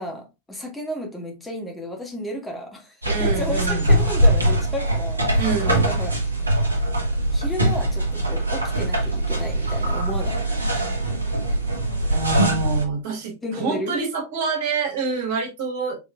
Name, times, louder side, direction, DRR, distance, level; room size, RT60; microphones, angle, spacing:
voice 1, 0.0-2.9 3.2-6.2 7.3-10.5 13.4-13.9, left 1 dB, 10° left, 1.4 m, -32 dB
voice 2, 3.0-3.9 5.4-5.9 12.1-16.0, right 4 dB, 55° right, 1.8 m, -26 dB
sound 1, 3.0-12.9, right 1 dB, 80° right, 1.0 m, -22 dB
5.0 x 3.1 x 2.4 m
figure-of-eight pair, 90°, 0 cm